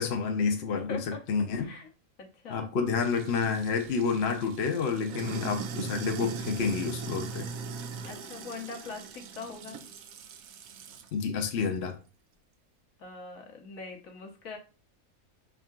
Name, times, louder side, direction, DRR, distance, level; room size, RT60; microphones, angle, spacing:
voice 1, 0.0-1.7 2.5-7.5 11.1-12.0, left 5 dB, 55° left, 4 dB, 0.9 m, -29 dB
voice 2, 0.9-1.2 1.6-1.9 2.2-2.7 8.0-9.8 13.0-14.6, left 4 dB, 75° left, 3 dB, 1.4 m, -42 dB
Sink (filling or washing), 3.0-11.1, right 5 dB, 85° right, 1.1 m, -40 dB
5.4 x 3.6 x 2.4 m, 0.35 s
omnidirectional pair, 1.4 m